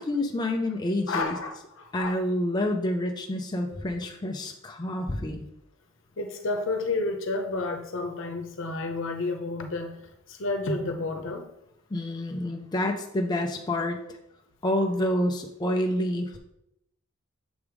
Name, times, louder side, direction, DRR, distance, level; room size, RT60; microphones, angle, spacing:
voice 1, 0.0-1.4 1.9-5.5 11.9-14.2 14.6-16.4, left 1 dB, 20° left, 2 dB, 0.4 m, -28 dB
voice 2, 1.1-2.2 6.2-11.4, left 3 dB, 65° left, 5 dB, 0.8 m, -31 dB
7.0 x 3.4 x 4.7 m, 0.81 s
head